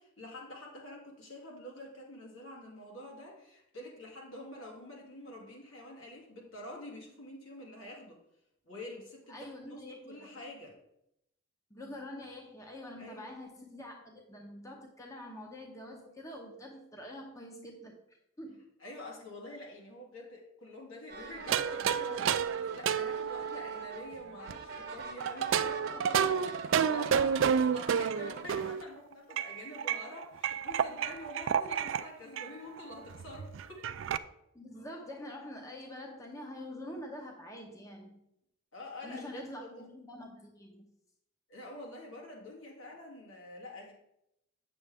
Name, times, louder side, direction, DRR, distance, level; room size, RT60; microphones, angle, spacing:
voice 1, 0.0-8.2 8.6-9.8 10.1-10.8 13.0-13.4 18.8-33.9 38.7-39.9 41.5-43.9, left 1 dB, 75° left, -2 dB, 2.6 m, -47 dB
voice 2, 9.3-10.3 11.7-18.0 18.4-18.6 34.5-38.2 39.0-40.9, left 1 dB, 15° left, 1 dB, 0.8 m, -46 dB
sound 1, 21.1-28.4, right 4 dB, 50° right, 1.1 m, -45 dB
sound 2, 21.5-24.5 25.2-28.8 29.3-32.0 32.4-32.5 32.8-32.9 33.1-34.2, right 7 dB, 65° right, 0.3 m, -30 dB
8.5 x 6.8 x 3.5 m, 0.81 s
head